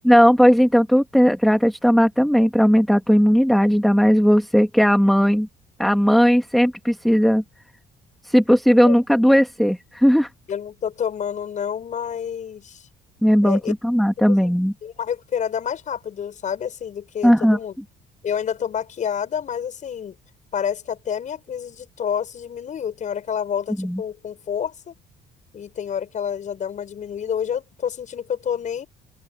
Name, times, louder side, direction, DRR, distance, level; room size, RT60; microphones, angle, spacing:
voice 1, 0.0-5.5 5.8-7.4 8.2-10.3 13.2-14.7 17.2-17.6 23.8-24.0, equal, ahead, 2.8 m, -17 dB
voice 2, 10.5-12.9 13.4-13.7 14.3-14.5 14.8-17.7 18.2-20.2 20.5-24.9 25.5-28.9, left 8 dB, 45° left, 7.0 m, -28 dB
open air
cardioid pair, 110°, 17 cm